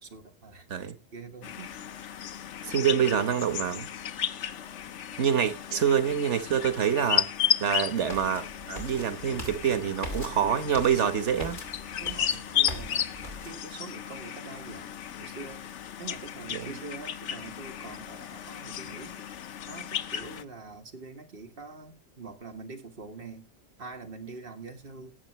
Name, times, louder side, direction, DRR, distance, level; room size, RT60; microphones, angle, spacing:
voice 1, 0.0-1.9 5.4-5.6 12.0-13.1 13.4-23.5 23.8-25.1, right 3 dB, 55° right, 1.7 m, -45 dB
sound 1, 1.4-20.4, left 9 dB, 90° left, 1.1 m, -34 dB
voice 2, 2.6-3.9 5.2-7.3 7.6-11.6 16.5-16.7, right 8 dB, 85° right, 1.5 m, -26 dB
sound 2, 8.1-13.5, left 1 dB, 45° left, 3.0 m, -41 dB
18.5 x 7.6 x 3.1 m
omnidirectional pair, 1.2 m